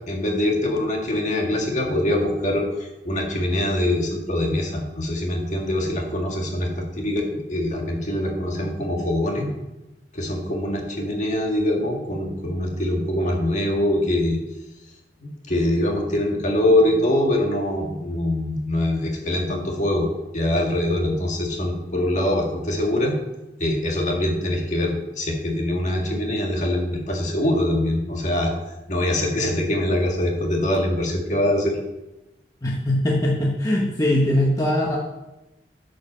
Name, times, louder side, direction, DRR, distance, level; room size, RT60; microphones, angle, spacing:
voice 1, 0.1-9.5 10.1-14.4 15.2-20.1 20.3-23.2 23.6-28.5 28.9-31.8, left 1 dB, 40° left, 1 dB, 1.8 m, -23 dB
voice 2, 32.6-35.0, left 1 dB, 20° left, -3 dB, 1.1 m, -21 dB
8.9 x 5.4 x 6.2 m, 0.99 s
head